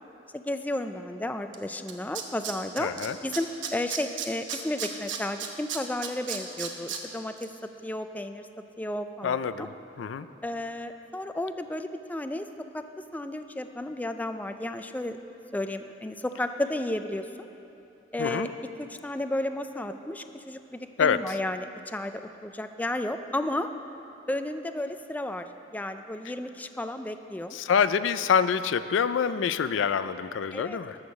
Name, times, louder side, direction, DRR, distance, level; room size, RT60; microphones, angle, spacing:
voice 1, 0.3-2.9 3.2-7.5 7.8-8.5 8.8-9.7 10.4-12.5 12.7-15.2 15.5-17.5 18.1-23.7 24.3-25.5 25.7-27.6 30.5-30.8, left 1 dB, 10° left, 8 dB, 0.4 m, -33 dB
Tools, 1.5-1.6 1.9-3.1 3.3-7.0 7.4-7.5, right 8 dB, 80° right, 1.0 m, -33 dB
voice 2, 2.8-3.2 9.2-9.7 10.0-10.3 18.2-18.5 21.0-21.2 27.5-31.0, left 7 dB, 85° left, 13 dB, 0.4 m, -26 dB
14.0 x 6.5 x 6.3 m, 2.8 s
head